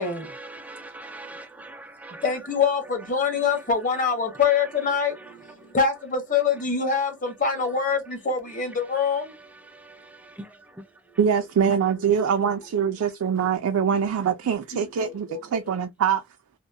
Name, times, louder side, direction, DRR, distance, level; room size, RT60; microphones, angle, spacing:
voice 1, 0.0-2.3 5.1-5.3 9.6-10.8, right 2 dB, 5° right, 0.3 m, -42 dB
voice 2, 2.2-9.3 14.7-15.4, left 5 dB, 40° left, 0.8 m, -25 dB
voice 3, 11.2-15.3 15.5-16.2, right 7 dB, 85° right, 0.3 m, -23 dB
2.8 x 2.1 x 2.4 m
head